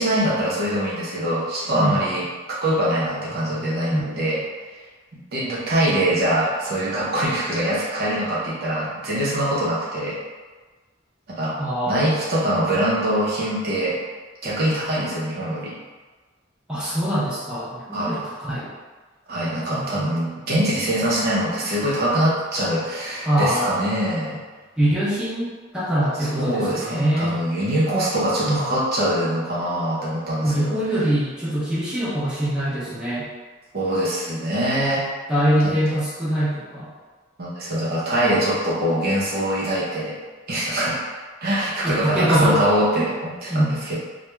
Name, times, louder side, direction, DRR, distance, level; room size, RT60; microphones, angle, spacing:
voice 1, 0.0-2.3 2.6-4.4 5.3-10.2 11.4-11.6 11.9-14.0 14.4-15.7 17.9-18.2 19.3-24.4 26.2-30.8 33.7-35.1 35.6-36.0 37.4-40.1 40.5-41.0 41.4-44.0, right 1 dB, 55° right, -7 dB, 0.7 m, -23 dB
voice 2, 11.6-12.0 16.7-18.7 19.7-20.1 23.2-23.7 24.8-27.4 28.4-28.8 30.4-33.3 35.3-36.9 41.8-42.6 42.9-43.0 43.5-43.8, right 1 dB, 5° right, -9 dB, 0.5 m, -23 dB
2.3 x 2.2 x 3.0 m, 1.4 s
head